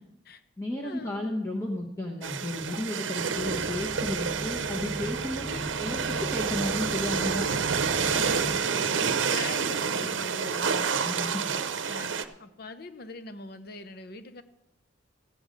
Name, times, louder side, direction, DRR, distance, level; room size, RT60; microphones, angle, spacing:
voice 1, 0.0-0.4 0.8-1.3 7.9-8.9 9.3-10.9 11.5-14.4, left 3 dB, 55° left, 9 dB, 0.8 m, -42 dB
voice 2, 0.6-7.4 10.9-11.5, left 1 dB, 15° left, -3 dB, 1.1 m, -33 dB
sound 1, 2.2-12.2, right 6 dB, 80° right, 0.7 m, -29 dB
sound 2, 3.4-8.6, right 1 dB, 30° right, 1.4 m, -39 dB
14.5 x 8.1 x 5.2 m, 0.91 s
head